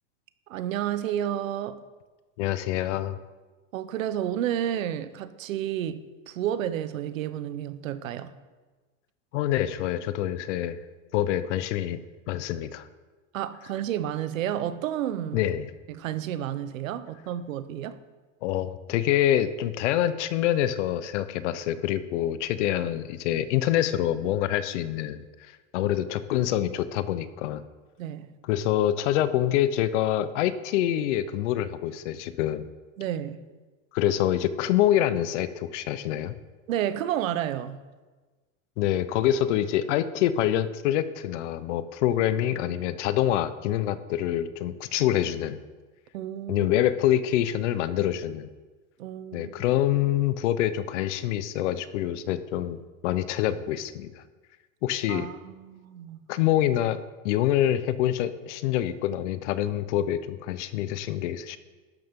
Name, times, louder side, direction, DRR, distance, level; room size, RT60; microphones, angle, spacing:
voice 1, 0.5-1.8 3.7-8.3 13.3-15.4 15.9-18.0 28.0-28.4 33.0-33.5 36.7-37.8 46.1-46.7 49.0-49.5 55.1-56.2, right 11 dB, 85° right, 1.0 m, -31 dB
voice 2, 2.4-3.2 9.3-10.8 11.1-12.0 12.3-12.9 15.3-15.7 18.4-27.7 28.5-32.7 33.9-36.3 38.8-45.6 46.5-48.5 49.3-54.2 54.8-55.3 56.3-61.6, left 12 dB, 65° left, 0.9 m, -26 dB
12.0 x 12.0 x 3.7 m
supercardioid pair, 145°, 39 cm